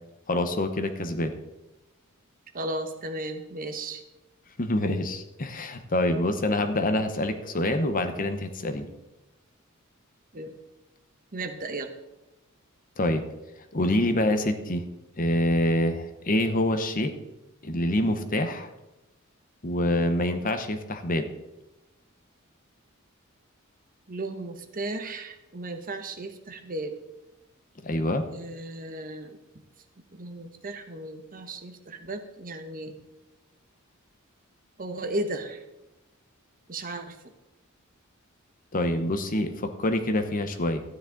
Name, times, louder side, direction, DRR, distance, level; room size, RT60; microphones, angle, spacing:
voice 1, 0.3-1.3 4.6-8.9 13.0-13.2 13.7-14.8 15.2-17.1 17.6-18.7 19.6-21.3 27.8-28.2 38.7-40.8, left 1 dB, 40° left, 8 dB, 0.9 m, -26 dB
voice 2, 2.5-4.0 10.3-10.6 11.3-11.9 24.1-27.0 28.3-29.4 30.1-32.9 34.8-35.6 36.7-37.2, right 2 dB, 40° right, 7 dB, 1.0 m, -35 dB
13.0 x 9.9 x 3.9 m, 0.97 s
head